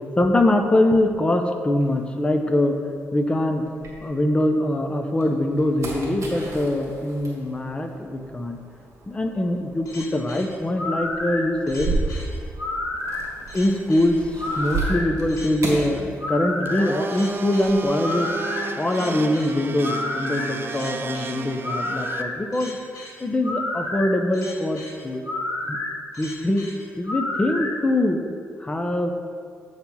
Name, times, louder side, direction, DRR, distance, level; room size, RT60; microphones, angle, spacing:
voice 1, 0.2-2.8 3.1-3.6 4.0-8.6 9.1-12.2 13.5-18.3 18.8-22.8 23.2-25.2 25.7-25.8 26.2-26.7 27.0-28.3 28.6-29.1, left 1 dB, 20° left, 5 dB, 0.7 m, -23 dB
sound 1, 1.8-4.6 5.0-16.8 17.0-17.9, right 3 dB, 65° right, 1.9 m, -34 dB
sound 2, 9.8-27.7, left 2 dB, 85° left, 1.5 m, -31 dB
Domestic sounds home sounds, 16.6-22.2, right 5 dB, 40° right, 0.4 m, -34 dB
7.7 x 4.5 x 5.5 m, 2.2 s
cardioid pair, 125°, 5 cm